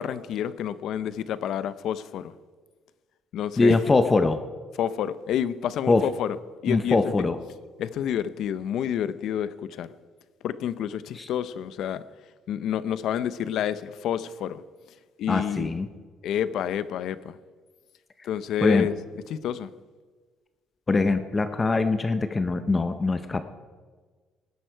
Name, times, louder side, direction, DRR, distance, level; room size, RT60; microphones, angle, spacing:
voice 1, 0.0-2.3 3.3-3.8 4.8-6.4 6.6-7.1 7.8-9.9 10.4-12.0 12.5-14.6 15.2-15.7 16.2-17.4 18.2-18.9 19.3-19.7, left 9 dB, 60° left, 15 dB, 0.7 m, -29 dB
voice 2, 3.6-4.4 5.9-6.1 6.7-7.4 11.2-11.3 15.3-15.9 18.6-18.9 20.9-23.4, left 3 dB, 15° left, 9 dB, 0.6 m, -22 dB
19.0 x 11.0 x 4.6 m, 1.4 s
cardioid pair, 175°, 0 cm